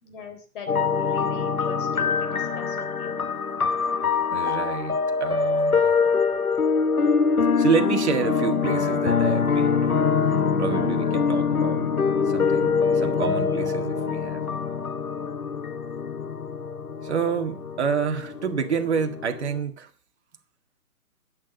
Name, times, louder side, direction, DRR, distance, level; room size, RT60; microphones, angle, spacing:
voice 1, 0.0-3.2, left 5 dB, 35° left, 3.6 m, -42 dB
sound 1, 0.7-19.6, left 5 dB, 70° left, 1.4 m, -24 dB
voice 2, 4.3-5.9 7.6-10.0 10.6-12.0 12.3-14.4 17.0-19.9, right 6 dB, 45° right, 1.9 m, -28 dB
13.0 x 9.1 x 7.0 m
figure-of-eight pair, 130°, 45 cm